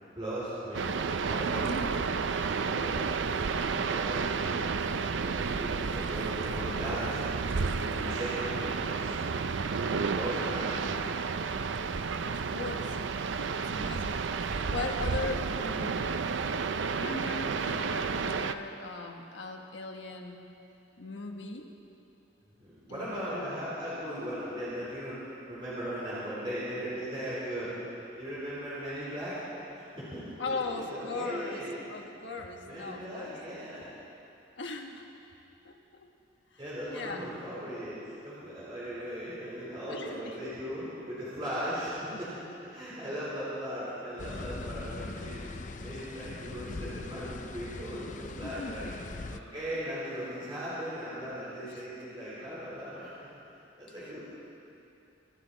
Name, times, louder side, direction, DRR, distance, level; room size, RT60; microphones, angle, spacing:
voice 1, 0.2-1.7 2.5-4.8 5.2-9.1 10.1-11.1 22.4-27.8 28.2-29.5 29.7-30.9 31.1-31.8 32.7-34.0 36.6-42.3 42.6-45.5 45.8-48.9 49.3-53.1 53.8-54.2, equal, 25° right, -10 dB, 3.9 m, -38 dB
sound 1, 0.7-18.5, right 5 dB, 80° right, 0.5 m, -31 dB
voice 2, 1.5-2.0 12.3-13.0 13.5-16.1 17.0-20.4 21.0-21.7 22.9-23.6 30.4-33.4 34.6-35.1 35.6-36.1 36.5-36.6 36.9-37.3 39.9-40.4 42.1-42.2 48.4-49.0 51.6-51.8 54.0-54.2, left 3 dB, 75° left, 2 dB, 1.4 m, -39 dB
sound 2, 44.2-49.4, left 3 dB, 40° left, 0.5 m, -41 dB
25.0 x 12.5 x 4.2 m, 2.8 s
head